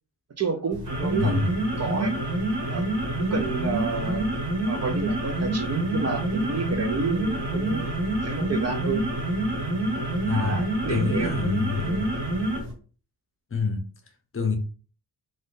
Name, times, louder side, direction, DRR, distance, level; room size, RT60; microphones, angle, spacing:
voice 1, 0.4-1.4 1.8-2.1 2.7-2.9 3.2-4.3 4.7-7.9 8.2-9.1 10.3-11.3 11.8-12.1, right 4 dB, 40° right, 0.5 m, -30 dB
sound 1, 0.7-12.7, right 1 dB, 80° right, 1.7 m, -27 dB
voice 2, 1.2-1.5 10.2-10.6 10.9-12.0 13.5-13.8 14.3-14.6, left 4 dB, 35° left, 0.6 m, -26 dB
2.6 x 2.4 x 3.5 m
wide cardioid pair, 115°, 40 cm